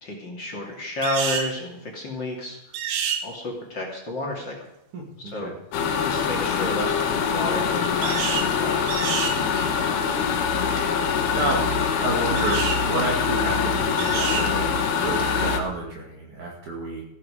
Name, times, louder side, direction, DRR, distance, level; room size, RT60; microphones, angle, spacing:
voice 1, 0.0-2.6 3.2-4.6 5.2-5.5 6.0-8.9, left 1 dB, 35° left, 0 dB, 2.5 m, -31 dB
sound 1, 1.0-1.5 2.7-3.2 8.0-8.5 8.9-9.4 12.4-12.8 14.0-14.5, right 7 dB, 75° right, 3.3 m, -28 dB
voice 2, 4.9-5.5 9.3-10.4 11.3-11.7 12.0-17.1, right 2 dB, 55° right, -1 dB, 3.4 m, -30 dB
sound 2, 5.7-15.6, left 6 dB, 85° left, 3.3 m, -24 dB
15.5 x 11.5 x 5.1 m, 0.84 s
omnidirectional pair, 4.5 m